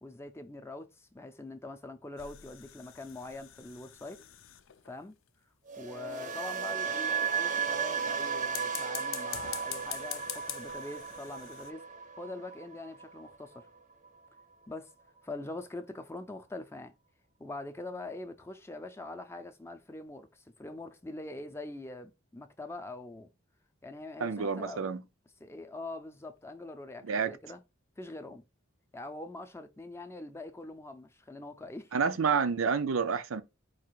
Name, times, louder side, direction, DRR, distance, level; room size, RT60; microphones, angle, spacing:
voice 1, 0.0-4.2 4.8-5.1 5.8-11.8 12.2-13.7 14.7-14.9 15.2-16.9 17.4-23.3 23.8-24.9 25.4-27.6 28.0-28.4 28.9-31.9, left 2 dB, 15° left, 0.5 m, -43 dB
sound 1, 2.2-5.0 8.4-11.7, left 12 dB, 70° left, 0.5 m, -44 dB
sound 2, 5.7-13.8 14.0-14.4, right 6 dB, 40° right, 0.6 m, -35 dB
voice 2, 24.2-25.0 27.0-27.3 31.9-33.4, right 5 dB, 85° right, 0.5 m, -29 dB
4.7 x 2.5 x 4.5 m
head